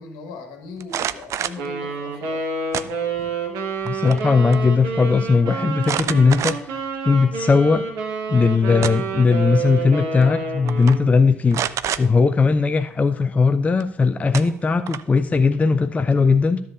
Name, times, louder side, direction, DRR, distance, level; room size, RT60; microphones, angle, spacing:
voice 1, 0.0-2.4, left 3 dB, 65° left, 3 dB, 1.4 m, -38 dB
sound 1, 0.8-1.7 2.7-3.3 3.7-4.3 4.5-4.6 5.8-6.8 7.4-7.5 8.5-9.2 10.2-10.4 10.7-11.0 11.5-12.0 13.8-13.9 14.3-15.2, right 10 dB, 45° right, 0.4 m, -28 dB
Wind instrument woodwind instrument, 1.6-11.2, right 4 dB, 60° right, 1.1 m, -28 dB
voice 2, 3.9-6.8 7.0-7.8 8.3-11.6 12.0-16.6, left 4 dB, 20° left, 9 dB, 0.4 m, -18 dB
13.0 x 7.0 x 2.4 m, 0.64 s
figure-of-eight pair, 45°, 7 cm